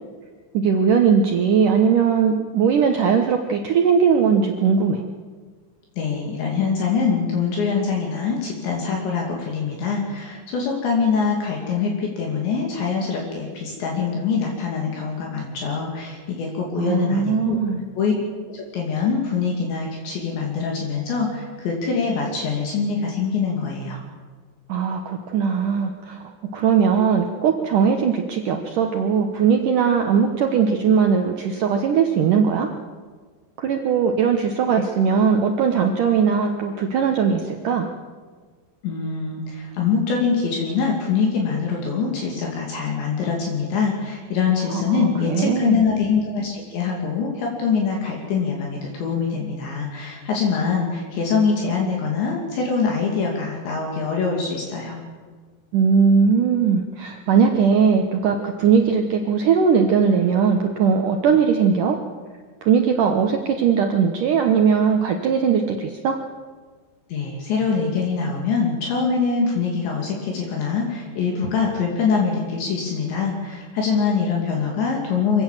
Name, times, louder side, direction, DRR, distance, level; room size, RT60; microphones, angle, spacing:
voice 1, 0.5-5.1 16.8-17.8 24.7-26.2 26.5-32.7 33.6-37.9 44.7-45.8 55.7-62.0 62.6-66.2, right 6 dB, 85° right, 4 dB, 1.8 m, -19 dB
voice 2, 6.0-17.6 18.0-18.1 18.5-24.0 38.8-55.0 67.1-75.4, left 5 dB, 65° left, -1 dB, 4.7 m, -24 dB
25.5 x 17.0 x 7.5 m, 1.5 s
omnidirectional pair, 5.6 m